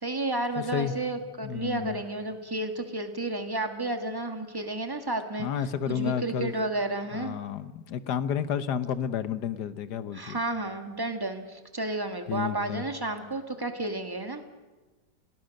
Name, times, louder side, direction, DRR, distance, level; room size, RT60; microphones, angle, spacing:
voice 1, 0.0-5.5 5.8-7.4 10.1-14.4, right 2 dB, 10° right, 6 dB, 1.7 m, -32 dB
voice 2, 0.6-0.9 1.4-2.0 5.4-6.6 7.1-10.4 12.3-12.9, left 8 dB, 65° left, 13 dB, 1.5 m, -31 dB
30.0 x 18.0 x 6.5 m, 1.2 s
omnidirectional pair, 2.0 m